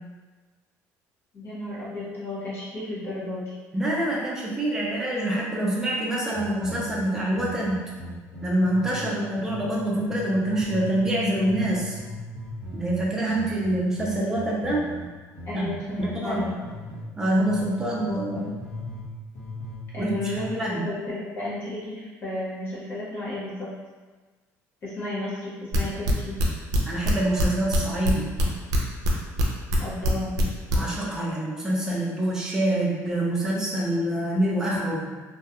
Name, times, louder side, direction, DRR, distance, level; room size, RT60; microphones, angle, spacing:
voice 1, 1.3-3.5 15.4-16.6 19.9-23.8 24.8-26.5 29.8-30.4, left 1 dB, 45° left, -8 dB, 1.0 m, -33 dB
voice 2, 3.7-7.8 8.4-12.0 12.7-14.9 15.5-16.4 17.2-18.6 20.0-20.1 20.6-20.9 26.9-28.3 30.7-35.1, right 1 dB, 10° right, -5 dB, 0.4 m, -26 dB
sound 1, 6.3-9.0 9.3-11.1 11.3-17.0 17.3-19.1 19.3-20.5, left 1 dB, 85° left, 0.9 m, -38 dB
sound 2, 25.7-27.4 27.7-29.4 29.7-30.8, equal, 70° right, 0.5 m, -22 dB
2.3 x 2.2 x 2.8 m, 1.3 s
cardioid pair, 155°, 6 cm